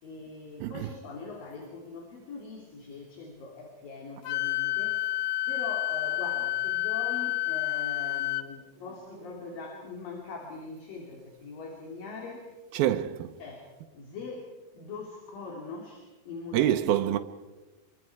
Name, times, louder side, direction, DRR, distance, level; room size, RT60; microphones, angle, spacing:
voice 1, 0.0-5.0 5.5-12.5 13.4-13.7 13.9-16.7, left 4 dB, 70° left, 4.4 m, -42 dB
Wind instrument woodwind instrument, 4.2-8.5, left 16 dB, 85° left, 3.0 m, -29 dB
voice 2, 12.7-13.4 16.5-17.2, right 12 dB, 80° right, 2.6 m, -26 dB
27.0 x 24.0 x 4.7 m
omnidirectional pair, 4.2 m